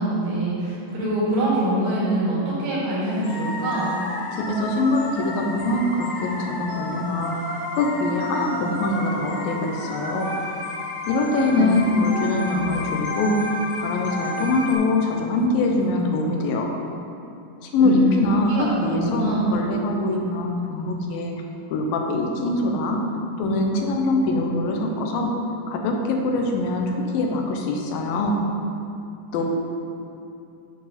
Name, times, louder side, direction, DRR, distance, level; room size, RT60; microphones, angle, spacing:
voice 1, 0.0-3.9 11.5-12.0 12.5-12.8 17.8-19.5, right 1 dB, 75° right, -8 dB, 3.9 m, -24 dB
sound 1, 3.2-14.8, left 1 dB, 60° left, 2.1 m, -31 dB
voice 2, 4.3-7.4 7.7-10.4 11.1-16.7 17.6-21.3 21.7-23.0 23.4-25.4 25.7-28.4 29.3-29.4, left 2 dB, 90° left, 2 dB, 2.6 m, -23 dB
9.4 x 4.7 x 5.0 m, 2.7 s
omnidirectional pair, 3.9 m